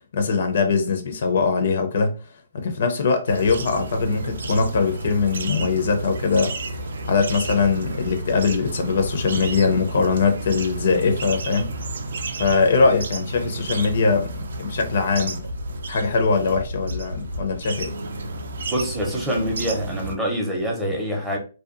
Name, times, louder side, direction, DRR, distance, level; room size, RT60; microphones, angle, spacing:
voice 1, 0.1-2.2 2.5-11.7 12.4-15.5 15.9-17.9, left 4 dB, 60° left, 0.5 m, -22 dB
sound 1, 3.3-20.1, right 2 dB, 75° right, 0.4 m, -31 dB
voice 2, 18.7-21.4, equal, 5° right, 0.6 m, -25 dB
2.7 x 2.2 x 2.5 m
hypercardioid pair, 155°, 0 cm